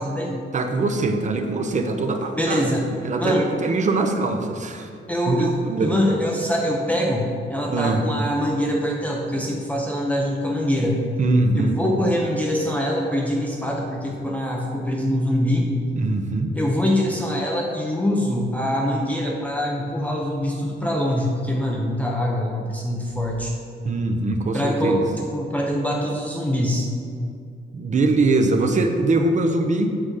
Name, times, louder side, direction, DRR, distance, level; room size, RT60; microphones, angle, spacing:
voice 1, 0.0-0.4 2.4-2.9 3.2-3.5 5.1-11.0 11.6-15.7 16.5-23.5 24.5-25.0 25.3-26.9, equal, 5° left, -2 dB, 0.7 m, -24 dB
voice 2, 0.5-4.9 5.3-6.0 7.7-8.0 11.2-11.7 16.0-16.5 23.8-25.0 27.7-29.9, right 3 dB, 35° right, 5 dB, 0.7 m, -22 dB
7.6 x 5.0 x 6.4 m, 2.4 s
wide cardioid pair, 170°, 21 cm